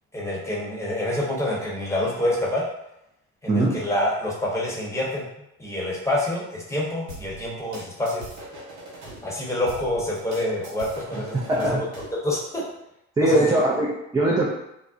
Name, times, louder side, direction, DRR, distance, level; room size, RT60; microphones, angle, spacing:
voice 1, 0.1-2.6 3.4-5.3 5.6-8.2 9.2-11.8 12.2-12.6 13.2-13.4, left 1 dB, 5° left, -4 dB, 0.9 m, -27 dB
voice 2, 3.5-3.8 11.1-11.9 13.2-14.5, right 1 dB, 10° right, -5 dB, 0.3 m, -21 dB
sound 1, 7.1-9.2 9.7-12.2, right 1 dB, 85° right, 0.8 m, -41 dB
2.5 x 2.0 x 2.5 m, 0.85 s
hypercardioid pair, 65°, 40 cm